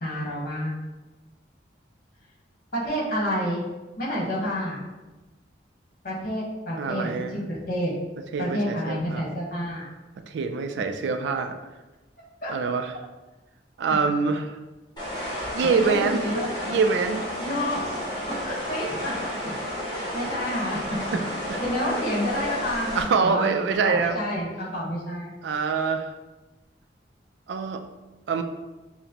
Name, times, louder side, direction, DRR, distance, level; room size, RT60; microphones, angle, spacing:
voice 1, 0.0-0.8 2.7-3.6 4.0-4.8 6.0-7.9 8.4-9.9 12.4-12.5 15.7-16.5 17.4-17.9 18.3-19.1 19.9-21.0 21.6-23.5 23.8-25.3, equal, 50° left, -5 dB, 1.2 m, -29 dB
voice 2, 6.8-7.3 8.3-9.3 10.3-11.5 12.5-12.9 13.8-14.6 15.5-16.2 16.6-17.3 21.1-21.2 21.5-21.6 22.9-24.2 25.4-26.1 27.5-27.8 28.3-28.4, right 5 dB, 80° right, 7 dB, 0.3 m, -25 dB
sound 1, 15.0-23.0, equal, 25° left, 1.4 m, -32 dB
5.7 x 2.0 x 2.9 m, 1.1 s
head